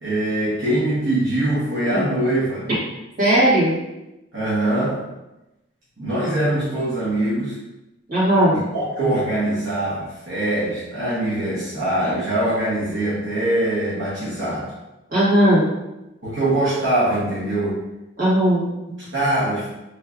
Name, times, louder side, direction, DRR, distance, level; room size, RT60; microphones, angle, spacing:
voice 1, 0.0-2.7 4.3-5.1 6.0-7.6 8.5-14.7 16.2-17.8 19.1-19.7, right 1 dB, 70° right, -9 dB, 0.9 m, -23 dB
voice 2, 3.2-3.7 8.1-8.6 15.1-15.7 18.2-19.0, right 1 dB, 45° right, -9 dB, 1.5 m, -17 dB
3.4 x 3.1 x 2.3 m, 0.96 s
head